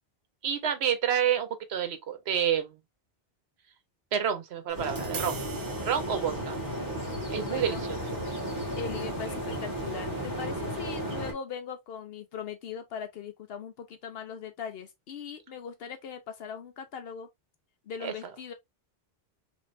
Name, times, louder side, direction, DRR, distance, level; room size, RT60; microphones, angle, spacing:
voice 1, 0.4-2.7 4.1-5.4 5.8-6.5 7.3-7.8 18.0-18.1, right 9 dB, 90° right, 1.0 m, -28 dB
sound 1, 4.7-11.3, equal, 20° right, 1.6 m, -34 dB
Tap, 4.7-10.8, right 4 dB, 55° right, 1.0 m, -47 dB
voice 2, 7.4-7.8 8.8-17.3 17.8-18.5, left 6 dB, 70° left, 0.8 m, -40 dB
3.3 x 3.2 x 2.4 m
omnidirectional pair, 1.0 m